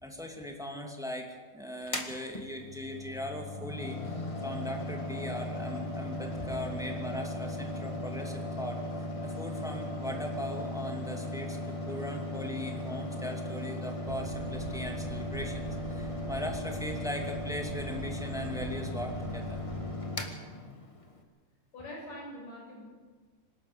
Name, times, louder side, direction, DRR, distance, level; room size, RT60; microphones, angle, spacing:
voice 1, 0.0-4.0 4.4-8.8 9.2-19.6, left 1 dB, ahead, 2 dB, 1.9 m, -39 dB
Mechanical fan, 1.8-21.2, left 1 dB, 25° left, 0.6 m, -37 dB
sound 1, 14.0-19.9, right 3 dB, 70° right, 4.2 m, -43 dB
voice 2, 21.7-22.8, left 1 dB, 55° left, -2 dB, 8.0 m, -43 dB
26.5 x 12.5 x 8.6 m, 1.4 s
omnidirectional pair, 3.8 m